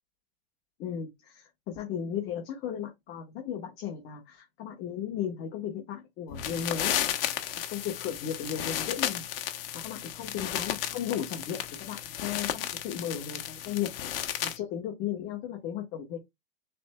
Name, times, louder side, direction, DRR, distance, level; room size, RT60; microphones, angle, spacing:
voice 1, 0.8-6.9 7.7-9.2 9.5-13.9 14.1-16.2, left 9 dB, 35° left, 1.2 m, -35 dB
sound 1, 6.3-14.6, left 11 dB, 65° left, 1.0 m, -33 dB
5.9 x 3.5 x 2.2 m
hypercardioid pair, 135°, 31 cm